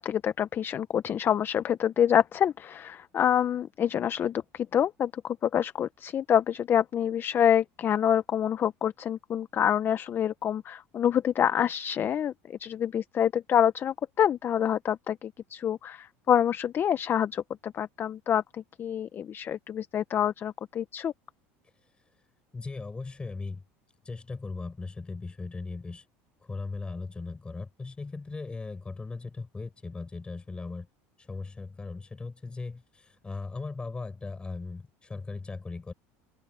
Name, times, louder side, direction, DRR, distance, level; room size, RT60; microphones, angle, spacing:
voice 1, 0.0-21.1, left 9 dB, 35° left, 0.7 m, -27 dB
voice 2, 22.5-23.6 24.0-26.0 26.4-30.9 31.2-35.9, left 3 dB, 15° left, 6.8 m, -38 dB
open air
supercardioid pair, 120°, 7 cm